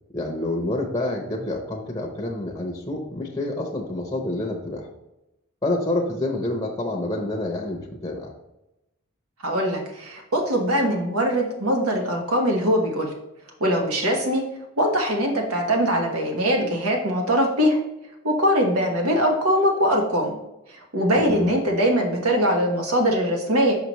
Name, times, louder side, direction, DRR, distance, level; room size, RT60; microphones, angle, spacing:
voice 1, 0.1-4.9 5.6-8.3 21.2-21.5, left 2 dB, 15° left, 0 dB, 0.7 m, -28 dB
voice 2, 9.4-13.1 13.6-14.4 14.8-17.8 18.2-20.3 20.7-23.8, equal, 80° right, 1 dB, 1.3 m, -22 dB
5.9 x 5.8 x 3.0 m, 0.90 s
head